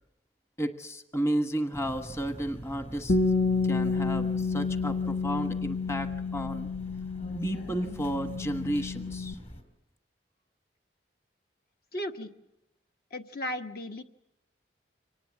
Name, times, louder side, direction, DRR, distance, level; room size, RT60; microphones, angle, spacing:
voice 1, 0.6-3.2 3.6-6.7 7.4-9.4, right 1 dB, 15° left, 8 dB, 1.2 m, -32 dB
sound 1, 1.7-9.6, equal, 35° left, 3.2 m, -44 dB
Bass guitar, 3.1-9.3, left 4 dB, 75° left, 1.2 m, -30 dB
voice 2, 11.9-12.3 13.1-14.0, left 1 dB, 55° left, 6 dB, 1.3 m, -35 dB
25.0 x 19.0 x 7.3 m, 0.85 s
head